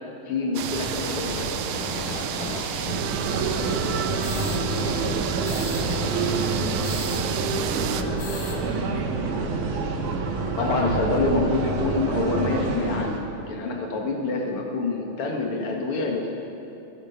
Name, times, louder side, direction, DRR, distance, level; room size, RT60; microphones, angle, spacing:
voice 1, 0.3-1.6 10.6-16.3, left 3 dB, 50° left, 1 dB, 2.1 m, -26 dB
sound 1, 0.6-8.0, right 9 dB, 85° right, 2.3 m, -31 dB
sound 2, 0.7-7.2 7.6-7.7 8.0-8.6, left 3 dB, 75° left, 2.9 m, -35 dB
voice 2, 2.7-6.8 7.3-8.9, right 1 dB, 30° right, -5 dB, 2.6 m, -39 dB
sound 3, 2.9-13.2, right 3 dB, 70° right, 2.6 m, -27 dB
18.0 x 10.5 x 5.8 m, 3.0 s
omnidirectional pair, 3.7 m